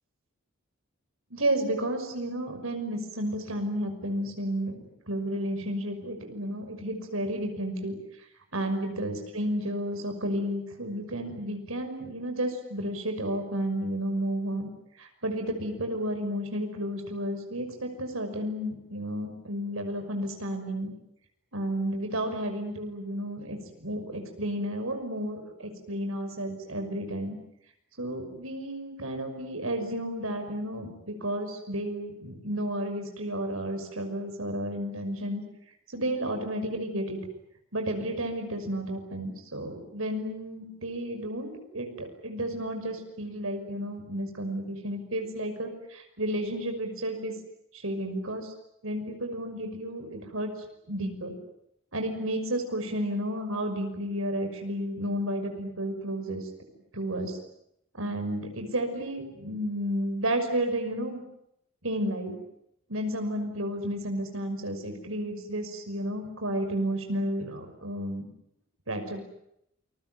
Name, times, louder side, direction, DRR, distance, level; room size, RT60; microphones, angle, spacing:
voice 1, 1.3-8.0 8.5-14.7 15.0-20.9 21.5-27.4 28.0-35.4 35.9-37.2 37.7-47.3 47.7-48.5 48.8-50.5 50.9-51.4 51.9-56.5 56.9-57.4 57.9-61.2 61.8-62.4 62.9-68.3 68.9-69.2, right 1 dB, 90° right, 6 dB, 6.0 m, -32 dB
28.5 x 21.5 x 9.4 m, 0.78 s
head